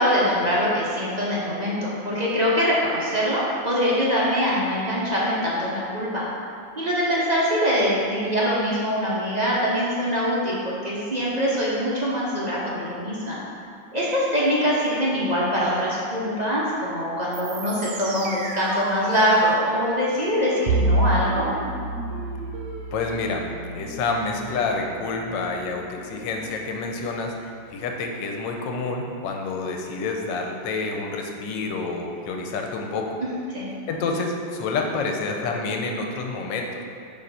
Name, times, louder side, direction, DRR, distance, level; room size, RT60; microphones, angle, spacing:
voice 1, 0.0-6.3 6.7-13.4 13.9-21.5 33.2-33.7, equal, 45° right, -6 dB, 0.5 m, -23 dB
sound 1, 17.3-27.2, right 2 dB, 60° right, 0.9 m, -37 dB
Bowed string instrument, 20.7-25.2, right 2 dB, 80° right, 1.3 m, -27 dB
voice 2, 22.9-33.2 33.9-36.7, left 3 dB, 75° left, 2 dB, 1.3 m, -28 dB
6.6 x 3.2 x 5.5 m, 2.4 s
omnidirectional pair, 2.1 m